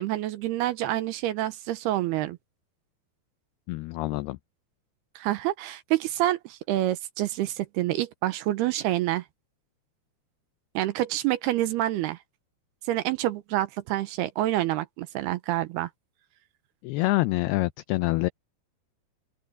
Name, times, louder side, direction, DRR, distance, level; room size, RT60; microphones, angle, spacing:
voice 1, 0.0-2.4 5.2-9.2 10.7-12.2 12.9-15.9, right 15 dB, 75° right, 2.6 m, -27 dB
voice 2, 3.7-4.4 16.8-18.3, left 20 dB, 90° left, 2.2 m, -26 dB
open air
omnidirectional pair, 5.1 m